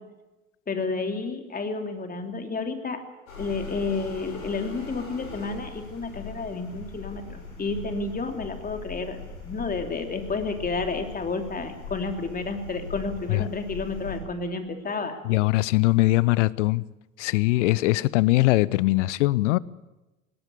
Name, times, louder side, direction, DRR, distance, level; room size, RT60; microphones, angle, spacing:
voice 1, 0.7-3.0 3.4-15.2, left 4 dB, 20° left, 3.0 m, -31 dB
sound 1, 3.3-14.2, left 4 dB, 75° left, 6.4 m, -40 dB
voice 2, 15.2-16.8 17.2-19.6, left 19 dB, 60° left, 0.7 m, -21 dB
21.0 x 18.0 x 8.3 m
figure-of-eight pair, 75°, 40 cm